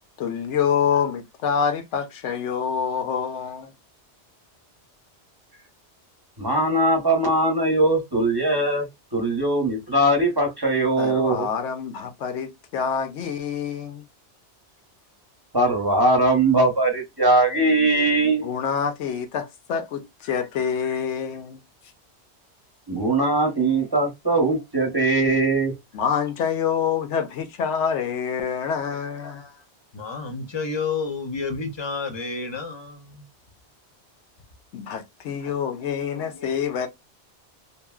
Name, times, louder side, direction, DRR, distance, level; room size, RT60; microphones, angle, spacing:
voice 1, 0.2-3.7 11.0-14.0 18.4-21.6 25.9-29.4 34.7-36.9, left 7 dB, 85° left, 0.9 m, -26 dB
voice 2, 6.4-8.9 9.1-11.5 15.5-18.4 22.9-25.7, right 2 dB, 25° right, 0.8 m, -20 dB
voice 3, 29.9-32.9, left 4 dB, 30° left, 0.6 m, -30 dB
2.9 x 2.6 x 2.3 m
omnidirectional pair, 1.2 m